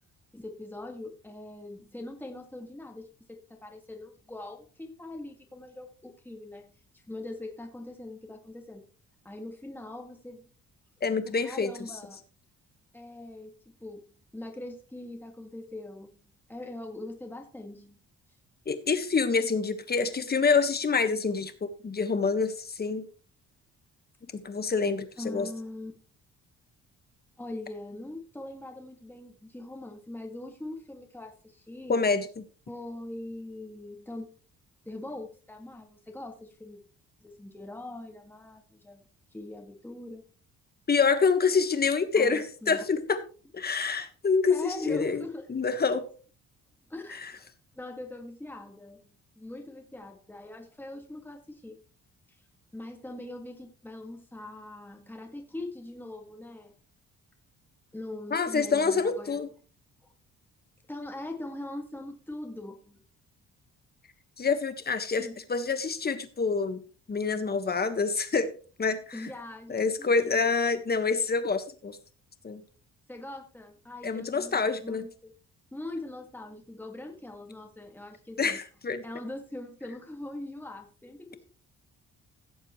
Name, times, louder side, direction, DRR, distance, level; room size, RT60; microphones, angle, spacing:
voice 1, 0.3-8.8 9.2-10.5 11.3-12.2 12.9-13.5 13.8-14.0 14.3-16.2 16.5-18.0 25.2-25.9 27.4-32.0 32.7-34.3 34.9-36.8 37.2-39.0 39.3-40.2 42.2-42.8 44.5-45.5 46.9-51.8 52.3-52.4 52.7-56.8 57.9-59.4 60.9-63.0 65.2-65.4 69.1-70.5 73.1-75.3 75.7-78.6 79.0-81.5, left 1 dB, 5° left, 1 dB, 2.1 m, -42 dB
voice 2, 11.0-11.7 18.6-23.1 24.3-25.5 31.9-32.3 40.9-43.2 43.5-45.2 45.5-46.1 47.1-47.3 58.3-59.5 64.4-66.8 67.1-68.5 68.8-69.3 69.7-72.0 72.4-72.6 74.0-75.0 78.4-79.0, left 4 dB, 30° left, 9 dB, 1.6 m, -27 dB
17.0 x 7.3 x 3.2 m, 0.39 s
cardioid pair, 90°, 30 cm